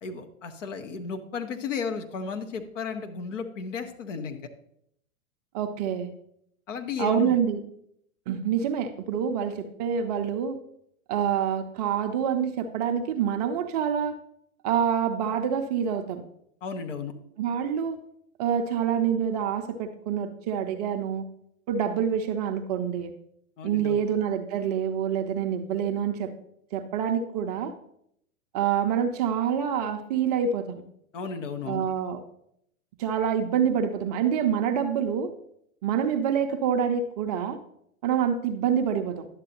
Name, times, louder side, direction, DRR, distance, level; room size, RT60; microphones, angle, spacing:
voice 1, 0.0-4.4 6.7-7.4 16.6-17.1 23.6-24.0 31.1-31.8, left 5 dB, 60° left, 5 dB, 1.1 m, -34 dB
voice 2, 5.5-6.1 7.0-7.6 8.3-10.6 11.1-14.1 14.6-16.2 17.4-18.0 18.4-21.3 21.7-23.1 23.6-26.3 26.7-27.7 28.5-30.7 31.6-32.2 33.0-35.3 35.8-37.6 38.0-39.3, right 8 dB, 30° right, 6 dB, 0.5 m, -26 dB
11.0 x 7.5 x 2.8 m, 0.73 s
figure-of-eight pair, 105°, 43 cm